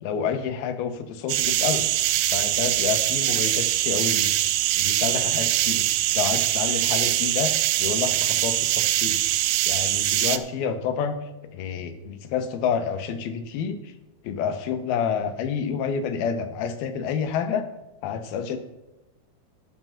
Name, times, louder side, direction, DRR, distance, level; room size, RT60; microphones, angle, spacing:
voice 1, 0.0-1.9 2.3-4.3 4.8-5.9 6.1-9.2 9.7-11.2 11.5-13.9 14.2-17.6 18.0-18.6, left 7 dB, 80° left, 8 dB, 2.8 m, -28 dB
sound 1, 1.3-10.4, right 14 dB, 85° right, 2.5 m, -23 dB
13.5 x 6.1 x 5.7 m, 1.0 s
omnidirectional pair, 4.4 m